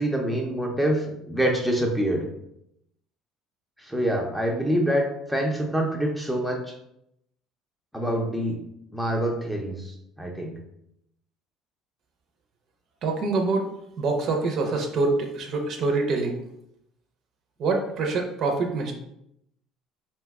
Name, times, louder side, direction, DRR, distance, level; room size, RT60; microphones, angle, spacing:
voice 1, 0.0-2.3 3.8-6.6 7.9-8.6 8.9-10.5, right 1 dB, ahead, 0 dB, 0.5 m, -26 dB
voice 2, 13.0-13.7 14.0-16.4 17.6-18.9, right 3 dB, 50° right, 3 dB, 0.5 m, -25 dB
2.7 x 2.2 x 3.5 m, 0.78 s
cardioid pair, 120°, 0 cm